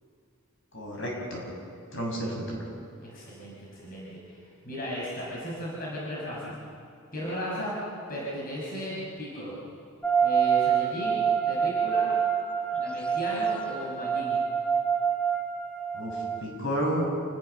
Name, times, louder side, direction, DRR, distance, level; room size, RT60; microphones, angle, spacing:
voice 1, 0.7-1.4 1.9-2.6 15.9-16.2 16.4-17.1, equal, 55° left, -1 dB, 7.2 m, -31 dB
voice 2, 3.0-4.2 4.7-6.5 7.1-7.8 8.1-9.6 10.2-11.2 11.5-12.1 12.7-14.4, equal, 40° left, -5 dB, 5.9 m, -35 dB
sound 1, 10.0-16.4, right 7 dB, 5° left, 1.4 m, -26 dB
28.5 x 20.5 x 6.8 m, 2.4 s
head